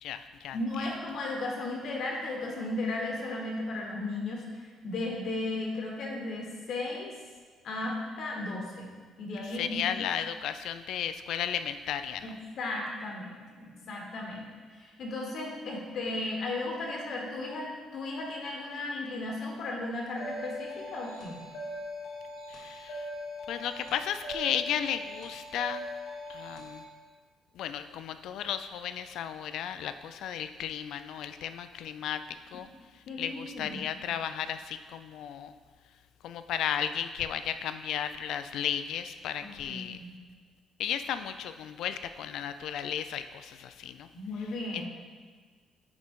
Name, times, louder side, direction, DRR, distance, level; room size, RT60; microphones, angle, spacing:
voice 1, 0.0-0.6 9.5-12.3 22.5-23.1 23.5-25.9 26.3-26.8 27.6-32.2 32.5-32.7 33.2-35.5 36.2-40.0 40.8-44.1 44.7-44.9, left 9 dB, 70° left, 10 dB, 0.3 m, -34 dB
voice 2, 0.5-7.1 7.6-8.9 9.2-9.9 12.2-21.4 33.1-33.8 39.4-40.2 44.1-44.9, left 2 dB, 55° left, 0 dB, 1.1 m, -35 dB
sound 1, 20.2-26.8, left 1 dB, 90° left, 1.3 m, -41 dB
9.6 x 3.8 x 3.6 m, 1.5 s
cardioid pair, 145°, 0 cm